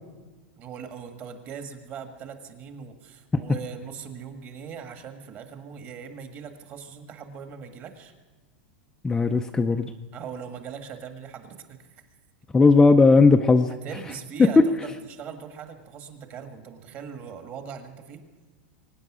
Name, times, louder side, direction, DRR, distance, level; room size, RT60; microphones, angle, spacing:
voice 1, 0.6-8.1 10.1-11.9 13.8-18.2, right 7 dB, 30° right, 6 dB, 1.6 m, -40 dB
voice 2, 9.0-9.9 12.5-13.7, left 4 dB, 10° left, 4 dB, 0.5 m, -17 dB
23.5 x 9.5 x 6.1 m, 1.3 s
supercardioid pair, 160°, 6 cm